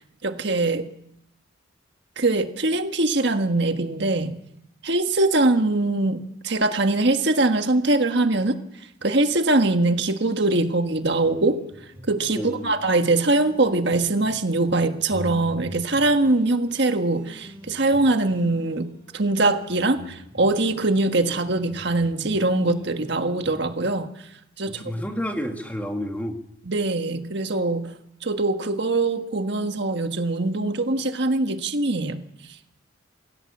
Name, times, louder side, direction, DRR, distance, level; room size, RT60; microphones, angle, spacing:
voice 1, 0.2-0.9 2.2-4.4 4.8-8.6 9.0-11.6 12.1-24.1 24.6-24.8 26.7-27.9 28.2-32.2, right 2 dB, 55° right, 6 dB, 1.5 m, -22 dB
sound 1, 10.8-23.7, equal, 10° right, 4.5 m, -44 dB
voice 2, 12.3-12.7 24.8-26.4, equal, 5° left, 3 dB, 2.2 m, -30 dB
23.0 x 17.0 x 7.3 m, 0.78 s
head